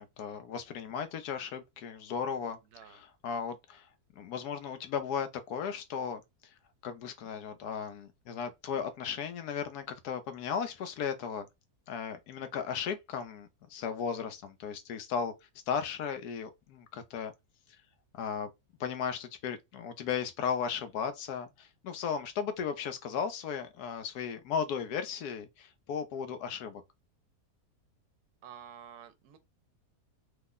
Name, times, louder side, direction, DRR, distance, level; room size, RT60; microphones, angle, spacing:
voice 1, 0.0-6.5 6.8-11.4 11.9-17.3 17.7-17.8 18.1-18.5 18.8-26.8, left 7 dB, 85° left, 1.2 m, -36 dB
voice 2, 2.7-3.0 28.4-29.4, right 8 dB, 80° right, 1.1 m, -50 dB
3.3 x 2.1 x 3.7 m
omnidirectional pair, 1.6 m